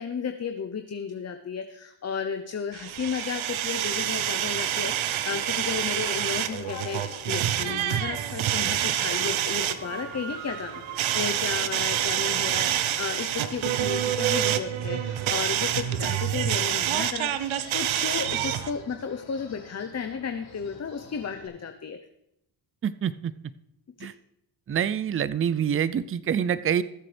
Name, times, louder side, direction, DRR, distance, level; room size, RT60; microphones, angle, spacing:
voice 1, 0.0-22.0 24.0-24.1, left 6 dB, 35° left, 7 dB, 0.8 m, -33 dB
sound 1, 2.7-18.7, right 11 dB, 85° right, 0.8 m, -27 dB
sound 2, 5.2-21.5, left 4 dB, 75° left, 4.3 m, -49 dB
voice 2, 22.8-23.3 24.0-24.1 24.7-26.8, right 8 dB, 30° right, 16 dB, 0.5 m, -26 dB
20.0 x 7.6 x 3.4 m, 0.81 s
cardioid pair, 70°, 46 cm